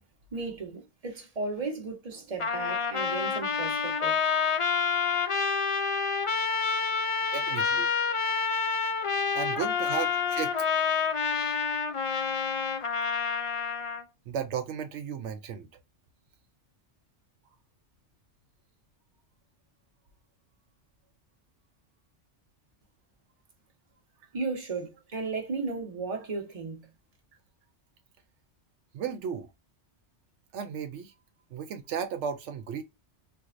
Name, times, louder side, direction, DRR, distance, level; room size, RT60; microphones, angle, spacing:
voice 1, 0.3-4.2 24.3-26.9, right 4 dB, 35° right, 1.0 m, -35 dB
Trumpet, 2.4-14.0, left 6 dB, 60° left, 0.3 m, -28 dB
voice 2, 4.6-5.3 7.3-7.9 9.3-10.7 14.3-15.7 28.9-29.5 30.5-31.1 31.5-32.8, right 7 dB, 80° right, 0.9 m, -35 dB
4.6 x 2.2 x 2.5 m
omnidirectional pair, 1.2 m